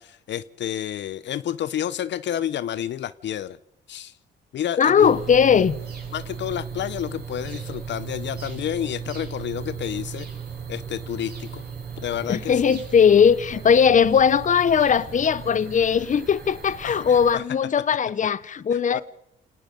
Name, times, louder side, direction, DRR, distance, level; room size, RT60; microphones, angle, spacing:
voice 1, 0.0-3.6 3.9-4.1 4.5-5.2 6.1-10.3 10.7-11.6 12.0-12.8 16.8-17.4 18.9-19.0, left 10 dB, 65° left, 0.7 m, -30 dB
voice 2, 4.8-5.8 12.3-19.0, left 7 dB, 40° left, 0.9 m, -19 dB
sound 1, 5.0-17.3, right 7 dB, 55° right, 7.4 m, -37 dB
27.5 x 19.0 x 5.2 m
cardioid pair, 90°, 20 cm